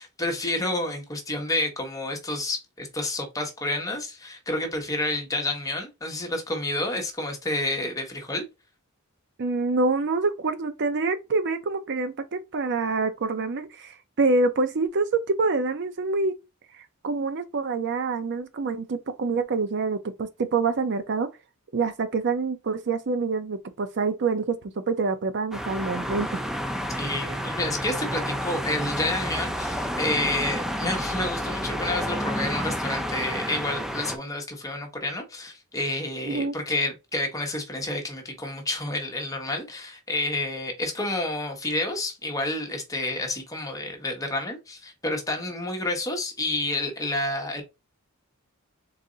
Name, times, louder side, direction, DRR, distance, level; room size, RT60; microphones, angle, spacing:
voice 1, 0.0-8.4 27.0-47.6, left 2 dB, 15° left, 1.1 m, -29 dB
voice 2, 9.4-16.3 17.0-21.3 21.7-26.4 36.2-36.5, right 3 dB, 50° right, 0.5 m, -26 dB
sound 1, 25.5-34.2, equal, ahead, 0.4 m, -30 dB
4.1 x 2.6 x 3.8 m
head